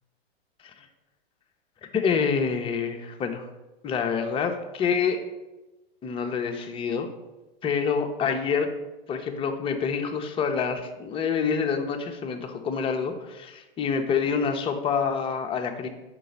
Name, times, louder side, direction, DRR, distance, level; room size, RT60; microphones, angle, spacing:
voice 1, 1.9-3.5 3.8-5.2 6.0-7.1 7.6-8.7 9.1-15.9, left 6 dB, 15° left, 5 dB, 0.5 m, -27 dB
5.1 x 3.8 x 5.3 m, 1.1 s
figure-of-eight pair, 100°, 31 cm